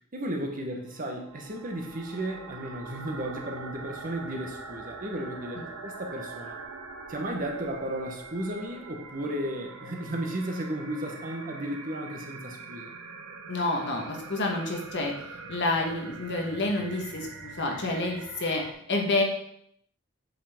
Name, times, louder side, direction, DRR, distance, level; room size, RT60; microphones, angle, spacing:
voice 1, 0.1-6.6 7.1-12.9, right 1 dB, 40° right, 2 dB, 1.0 m, -34 dB
sound 1, 0.9-18.7, right 4 dB, 80° right, 0.8 m, -43 dB
voice 2, 13.5-15.1 15.5-18.6 18.9-19.2, left 2 dB, 55° left, 1 dB, 1.3 m, -28 dB
7.5 x 5.5 x 3.6 m, 0.72 s
head